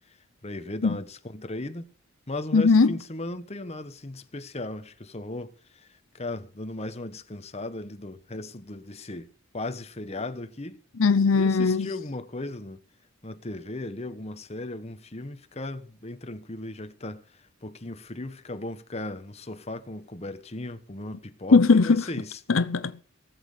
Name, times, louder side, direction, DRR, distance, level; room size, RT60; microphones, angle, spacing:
voice 1, 0.4-1.9 2.3-10.8 11.3-12.8 13.2-22.4, left 2 dB, 30° left, 1.2 m, -37 dB
voice 2, 2.5-2.9 11.0-11.9 21.5-22.0 22.5-23.0, left 4 dB, 90° left, 0.7 m, -19 dB
18.5 x 7.6 x 6.7 m
head